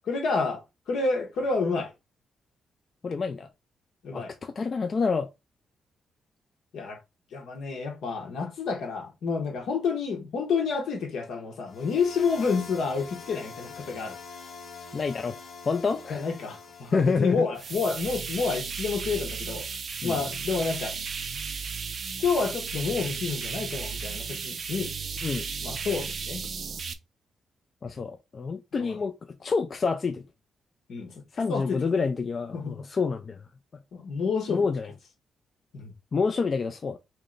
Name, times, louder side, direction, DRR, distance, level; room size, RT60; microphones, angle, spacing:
voice 1, 0.0-1.9 4.0-4.3 6.7-7.0 7.3-14.2 16.1-19.7 20.0-21.0 22.2-24.9 25.6-26.5 28.8-29.0 30.9-31.2 31.5-31.8 32.5-32.8 33.9-34.7 35.7-35.9, left 4 dB, 70° left, 1.2 m, -29 dB
voice 2, 3.0-3.5 4.1-5.3 14.9-15.4 15.6-16.2 16.9-17.5 20.0-20.2 25.2-25.5 27.8-29.1 29.4-30.2 31.3-33.4 34.5-34.9 36.1-37.0, left 4 dB, 35° left, 0.4 m, -27 dB
sound 1, 11.7-17.5, left 4 dB, 55° left, 0.8 m, -44 dB
sound 2, 17.6-26.9, right 5 dB, 40° right, 0.4 m, -34 dB
3.1 x 2.9 x 3.8 m
wide cardioid pair, 155°, 0 cm